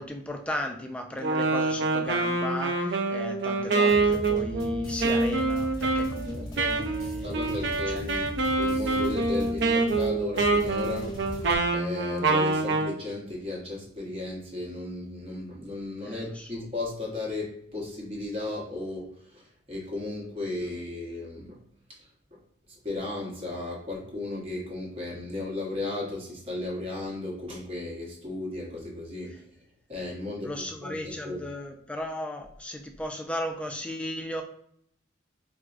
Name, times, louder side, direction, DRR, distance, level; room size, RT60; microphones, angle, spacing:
voice 1, 0.0-8.0 16.0-16.6 30.4-34.4, equal, 5° left, 4 dB, 0.3 m, -36 dB
Wind instrument woodwind instrument, 1.2-12.9, right 3 dB, 60° right, 0.5 m, -26 dB
sound 1, 3.9-11.6, equal, 20° left, 1.0 m, -39 dB
voice 2, 7.2-11.4 11.7-21.6 22.3-22.4 22.8-29.4 29.9-31.5, left 2 dB, 30° right, -2 dB, 0.9 m, -35 dB
4.6 x 2.1 x 2.4 m, 0.68 s
head